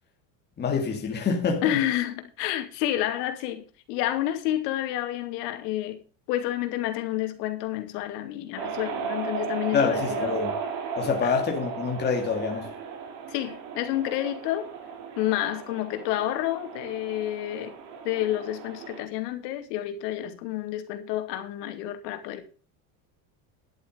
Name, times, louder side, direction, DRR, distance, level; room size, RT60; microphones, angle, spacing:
voice 1, 0.6-1.8 9.7-10.6 11.0-12.7, left 5 dB, 20° left, 2.0 m, -26 dB
voice 2, 1.6-6.0 6.3-10.4 11.2-11.3 13.3-14.7 15.2-17.8 18.0-22.5, left 13 dB, 90° left, 2.5 m, -29 dB
sound 1, 8.6-19.0, right 6 dB, 80° right, 3.3 m, -35 dB
11.0 x 8.4 x 5.1 m
cardioid pair, 155°, 47 cm